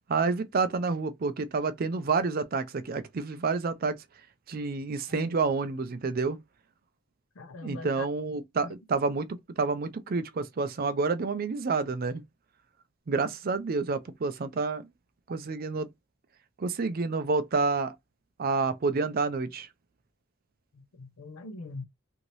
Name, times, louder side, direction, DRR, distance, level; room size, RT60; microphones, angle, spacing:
voice 1, 0.1-4.0 4.5-6.4 7.6-12.2 13.1-14.8 15.3-15.9 16.6-17.9 18.4-19.7, right 4 dB, 45° right, 0.4 m, -29 dB
voice 2, 7.4-8.1 8.6-8.7 20.7-21.9, left 2 dB, 90° left, 0.6 m, -42 dB
2.8 x 2.6 x 3.1 m
head